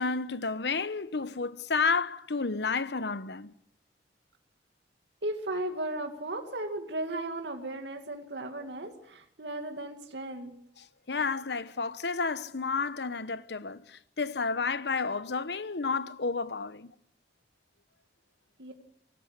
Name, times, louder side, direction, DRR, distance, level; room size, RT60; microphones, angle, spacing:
voice 1, 0.0-3.5 11.1-16.9, left 4 dB, 75° left, 1.0 m, -31 dB
voice 2, 5.2-10.6 18.6-18.7, right 1 dB, 85° right, 2.3 m, -36 dB
25.0 x 17.5 x 8.0 m
head